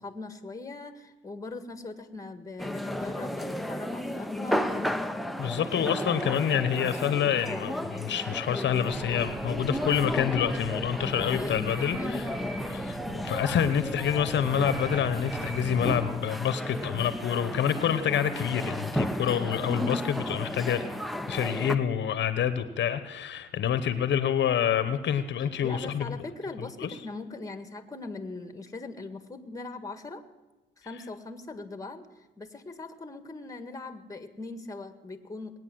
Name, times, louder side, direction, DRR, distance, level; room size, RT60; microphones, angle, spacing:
voice 1, 0.0-4.9 11.0-12.8 19.2-19.5 25.6-30.2 30.8-32.1 32.4-35.6, left 3 dB, 15° left, 9 dB, 1.6 m, -40 dB
sound 1, 2.6-21.8, left 1 dB, ahead, 0.8 m, -33 dB
voice 2, 5.4-12.3 12.7-20.9 21.3-26.1 26.8-26.9, left 9 dB, 65° left, 11 dB, 1.0 m, -27 dB
sound 2, 8.9-16.1, right 4 dB, 30° right, 0.8 m, -41 dB
sound 3, 11.7-12.0 12.3-12.6 14.7-15.0 15.3-15.6, right 2 dB, 80° right, 7.9 m, -43 dB
19.5 x 9.4 x 7.8 m, 1.1 s
cardioid pair, 90°, 20 cm